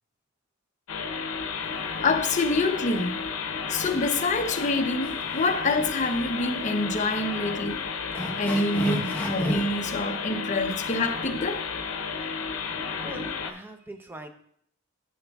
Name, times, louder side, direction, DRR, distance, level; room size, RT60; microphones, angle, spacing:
sound 1, 0.9-13.5, left 5 dB, 80° left, 0.7 m, -32 dB
voice 1, 2.0-3.2 3.7-7.8 8.4-11.7, left 2 dB, 35° left, 4 dB, 0.6 m, -26 dB
sound 2, 5.0-5.7 6.0-6.2 6.8-6.9 7.3-7.4 8.1-9.8, equal, 10° left, 0.9 m, -32 dB
voice 2, 13.0-14.3, right 1 dB, 10° right, 5 dB, 0.5 m, -42 dB
11.0 x 6.6 x 2.3 m, 0.67 s
head